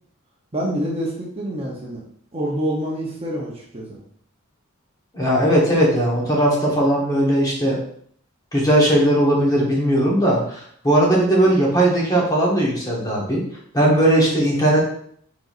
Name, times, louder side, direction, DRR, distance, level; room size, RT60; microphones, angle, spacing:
voice 1, 0.5-2.0 2.3-4.0, equal, 30° right, -3 dB, 0.8 m, -26 dB
voice 2, 5.1-7.8 8.5-13.4 13.7-14.8, right 1 dB, 15° left, -4 dB, 1.1 m, -18 dB
4.5 x 3.8 x 2.5 m, 0.63 s
head